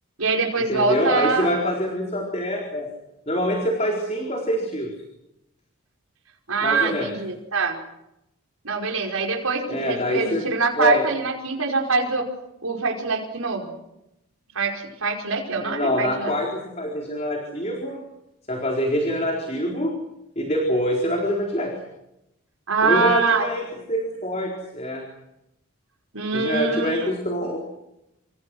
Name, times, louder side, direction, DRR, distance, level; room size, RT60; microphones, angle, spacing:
voice 1, 0.2-1.5 6.5-7.8 8.6-12.3 12.6-13.7 14.5-16.3 22.7-23.5 26.1-27.1, right 4 dB, 85° right, 0 dB, 5.2 m, -24 dB
voice 2, 0.7-2.9 3.3-4.9 6.6-7.1 9.7-10.4 10.8-11.0 15.6-18.0 18.5-19.9 20.4-21.7 22.8-25.0 26.3-27.6, equal, 30° left, 1 dB, 4.3 m, -25 dB
28.5 x 26.5 x 6.3 m, 0.87 s
head